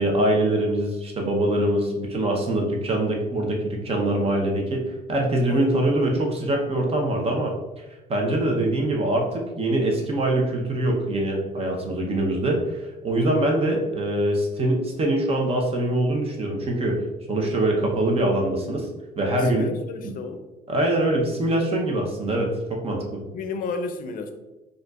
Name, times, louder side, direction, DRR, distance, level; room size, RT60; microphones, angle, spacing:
voice 1, 0.0-7.5 8.1-17.0 17.3-18.9 19.2-19.6 20.0-20.1 20.7-23.2, right 1 dB, 35° right, 0 dB, 0.8 m, -23 dB
voice 2, 5.5-5.8 19.4-20.4 23.3-24.3, left 4 dB, 55° left, 7 dB, 0.5 m, -32 dB
4.3 x 2.5 x 2.4 m, 1.1 s
cardioid pair, 110°, 17 cm